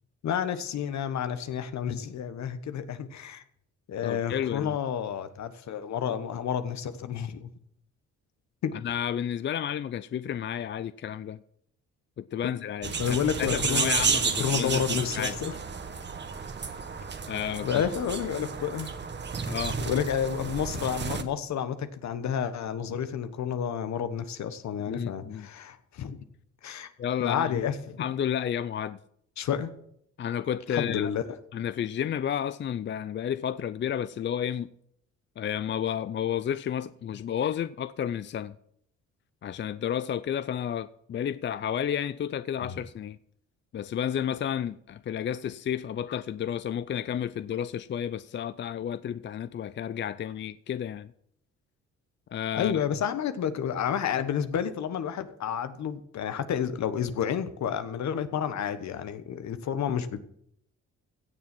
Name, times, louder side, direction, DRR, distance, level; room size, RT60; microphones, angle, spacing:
voice 1, 0.2-3.4 3.9-7.5 8.6-8.7 12.4-12.5 13.0-15.5 17.6-19.0 19.8-26.2 26.6-26.9 27.2-28.0 29.4-29.7 30.7-31.3 42.6-42.8 52.5-60.2, left 8 dB, 65° left, 1.2 m, -30 dB
voice 2, 4.0-4.8 8.8-11.4 12.2-15.4 17.3-17.8 19.5-19.8 24.9-25.5 27.0-27.6 28.0-29.0 30.2-31.1 31.5-34.7 35.4-38.5 39.4-43.2 43.7-51.1 52.3-52.8, left 9 dB, 40° left, 0.4 m, -31 dB
sound 1, 12.8-21.2, right 5 dB, 35° right, 1.3 m, -31 dB
16.5 x 7.2 x 6.1 m
cardioid pair, 90°, 30 cm